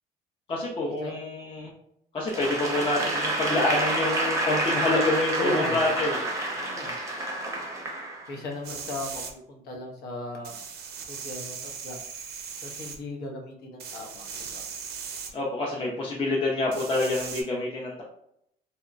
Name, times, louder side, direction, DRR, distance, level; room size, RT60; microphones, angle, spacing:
voice 1, 0.5-1.7 2.1-6.3 15.3-18.0, left 2 dB, 30° left, -3 dB, 0.5 m, -27 dB
Applause / Crowd, 2.3-8.5, right 2 dB, 20° right, 0.6 m, -29 dB
voice 2, 5.4-5.8 6.5-6.9 8.3-10.6 11.1-12.0 12.6-14.6, left 2 dB, 80° left, 2 dB, 0.7 m, -36 dB
sound 1, 8.6-9.3 10.4-13.0 13.8-15.3 16.7-17.4, right 6 dB, 70° right, 0.5 m, -38 dB
2.8 x 2.1 x 2.4 m, 0.74 s
cardioid pair, 110°, 17 cm